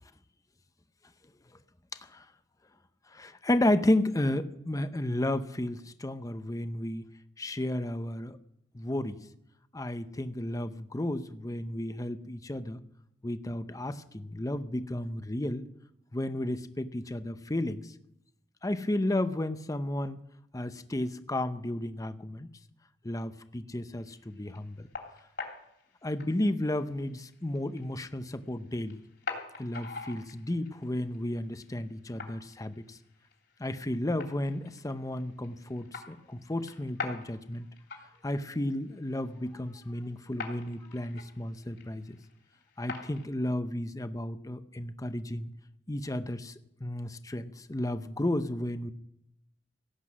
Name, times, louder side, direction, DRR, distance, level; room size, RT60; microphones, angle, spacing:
voice 1, 3.1-7.0 7.4-8.4 8.7-9.2 9.7-12.8 13.2-15.7 16.1-17.8 18.6-20.2 20.5-22.5 23.0-24.9 26.0-29.0 29.6-33.0 33.6-37.7 38.2-42.2 42.8-45.5 45.9-46.5 46.8-48.9, left 1 dB, 20° left, 11 dB, 0.7 m, -32 dB
sound 1, 23.9-43.3, left 4 dB, 65° left, 3.2 m, -46 dB
16.5 x 8.3 x 6.2 m, 0.80 s
head